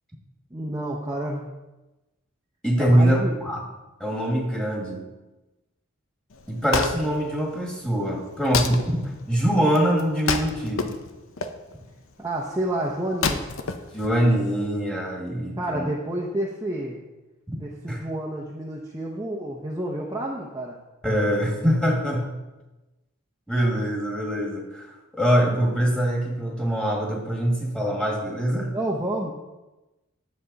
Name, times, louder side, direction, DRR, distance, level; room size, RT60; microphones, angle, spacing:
voice 1, 0.5-1.5 2.8-3.3 12.2-13.4 15.6-17.0 17.6-20.8 28.7-29.3, right 1 dB, 15° right, -3 dB, 0.8 m, -29 dB
voice 2, 2.6-3.6 4.0-5.0 6.5-9.0 9.3-10.9 13.9-15.9 17.9-18.0 21.0-22.3 23.5-28.7, equal, 5° left, -2 dB, 2.0 m, -23 dB
Wood, 6.3-14.7, left 4 dB, 70° left, 0.7 m, -31 dB
10.0 x 7.4 x 4.0 m, 1.1 s
head